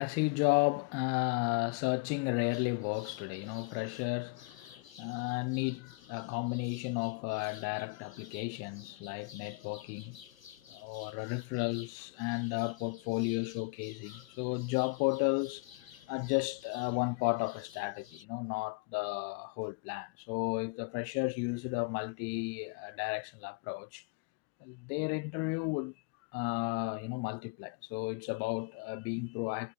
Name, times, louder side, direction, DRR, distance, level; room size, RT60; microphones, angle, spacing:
voice 1, 0.0-10.2 10.7-15.6 16.1-24.0 24.6-25.9 26.3-29.7, left 31 dB, 35° left, 1.2 m, -33 dB
sound 1, 2.5-18.2, left 7 dB, 90° left, 4.8 m, -55 dB
hypercardioid pair, 125°, 40 cm